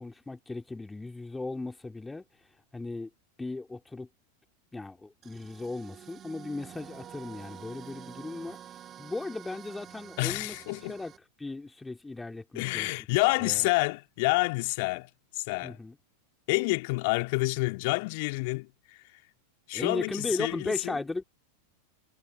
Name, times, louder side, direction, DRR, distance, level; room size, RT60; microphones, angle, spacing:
voice 1, 0.0-2.2 2.7-3.1 3.4-4.1 4.7-8.6 9.0-10.5 10.9-11.1 11.4-12.9 13.4-13.7 15.6-16.0 19.7-21.2, left 3 dB, 10° left, 2.7 m, -36 dB
sound 1, 5.2-11.2, right 10 dB, 25° right, 6.6 m, -48 dB
voice 2, 10.2-11.0 12.5-15.8 16.5-18.7 19.7-21.0, left 27 dB, 50° left, 2.4 m, -28 dB
figure-of-eight pair, 90°, 0 cm